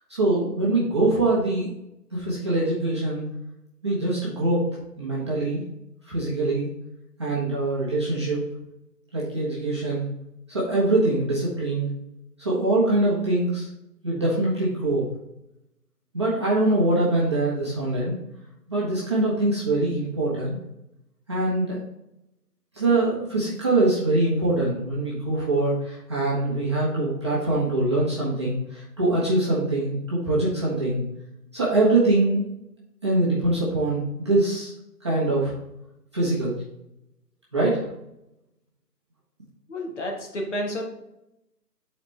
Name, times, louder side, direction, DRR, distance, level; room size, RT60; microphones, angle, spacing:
voice 1, 0.1-1.7 2.1-3.2 3.8-4.7 5.0-5.6 6.1-6.7 7.2-8.4 9.1-10.0 10.5-11.9 12.4-13.7 14.0-15.1 16.1-18.1 18.7-20.6 21.3-21.8 22.7-31.0 31.5-32.5 33.0-34.7 35.0-35.5 36.1-36.5 37.5-37.8, right 2 dB, 15° right, -8 dB, 0.9 m, -23 dB
voice 2, 39.7-40.8, equal, 45° left, 0 dB, 1.6 m, -30 dB
9.2 x 4.1 x 3.3 m, 0.85 s
figure-of-eight pair, 160°, 50 cm